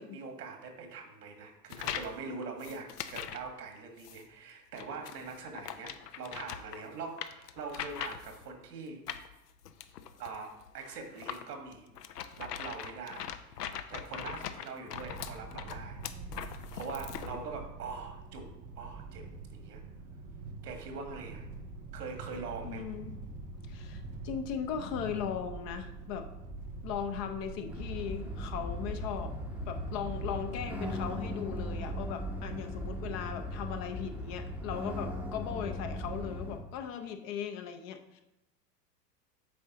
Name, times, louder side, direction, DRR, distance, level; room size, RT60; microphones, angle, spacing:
voice 1, 0.0-9.0 10.2-11.9 12.4-13.3 13.6-16.0 16.7-19.8 20.6-21.5 21.9-22.9, right 4 dB, 70° right, 4 dB, 1.6 m, -43 dB
sound 1, 1.7-2.2 2.6-3.5 4.0-4.2 4.8-8.5 9.1-17.4, left 9 dB, 70° left, 0.7 m, -41 dB
sound 2, 14.9-30.6, right 3 dB, 20° right, 0.3 m, -45 dB
voice 2, 22.6-23.1 23.7-26.3 26.8-29.3 29.7-38.2, left 8 dB, 35° left, 6 dB, 0.6 m, -38 dB
sound 3, 27.7-36.6, equal, 5° right, 0.7 m, -38 dB
8.6 x 5.3 x 2.9 m, 0.96 s
figure-of-eight pair, 90°, 49 cm